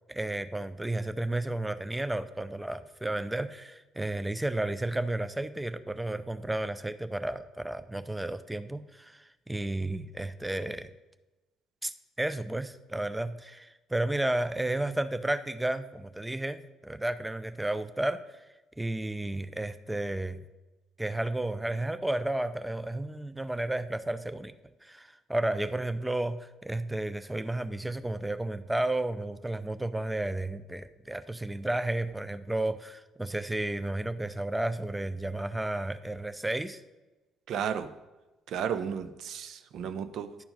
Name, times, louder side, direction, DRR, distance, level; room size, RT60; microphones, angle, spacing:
voice 1, 0.1-10.9 11.8-18.2 18.8-20.4 21.0-24.5 24.8-36.8, right 1 dB, 10° right, 12 dB, 0.5 m, -32 dB
voice 2, 37.5-37.9 38.5-40.4, right 8 dB, 55° right, 11 dB, 0.5 m, -33 dB
11.0 x 4.7 x 5.2 m, 1.1 s
figure-of-eight pair, 50°, 0 cm